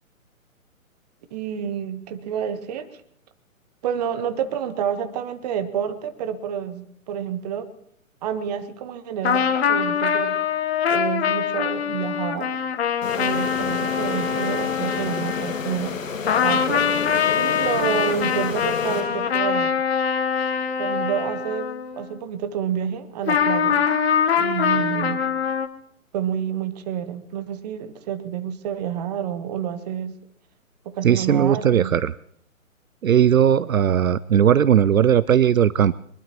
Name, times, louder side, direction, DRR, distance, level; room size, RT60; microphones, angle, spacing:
voice 1, 1.3-3.0 3.8-7.7 8.2-10.5 10.9-12.5 13.2-15.9 16.4-16.9 17.3-19.7 20.8-23.9 24.4-25.2 26.1-30.2 30.8-32.0, right 8 dB, 30° right, 10 dB, 1.2 m, -29 dB
sound 1, 9.2-16.0 16.3-22.2 23.3-25.7, left 7 dB, 50° left, 1.2 m, -23 dB
sound 2, 13.0-19.7, left 5 dB, 65° left, 1.3 m, -31 dB
voice 2, 31.0-32.2 33.0-35.9, right 9 dB, 75° right, 19 dB, 0.6 m, -18 dB
23.0 x 21.0 x 3.0 m, 0.68 s
figure-of-eight pair, 130°, 42 cm